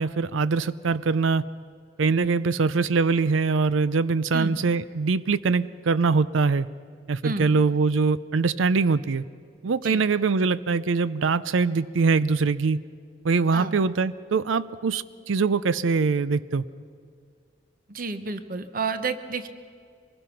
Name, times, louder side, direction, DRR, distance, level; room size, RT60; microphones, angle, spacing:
voice 1, 0.0-1.5 2.0-6.7 7.1-9.2 9.6-12.8 13.2-16.7, right 4 dB, 80° right, 16 dB, 0.5 m, -23 dB
voice 2, 17.9-19.5, right 4 dB, 45° right, 10 dB, 1.0 m, -30 dB
24.5 x 20.5 x 5.8 m, 2.2 s
head